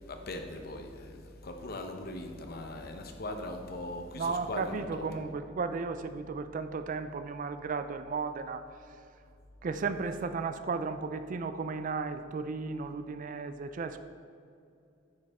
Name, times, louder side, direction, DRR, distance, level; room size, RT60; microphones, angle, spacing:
voice 1, 0.1-5.2, left 1 dB, 55° left, 5 dB, 0.8 m, -40 dB
voice 2, 4.2-9.0 9.6-14.0, right 4 dB, 45° right, 10 dB, 0.4 m, -35 dB
9.4 x 5.2 x 3.6 m, 2.5 s
head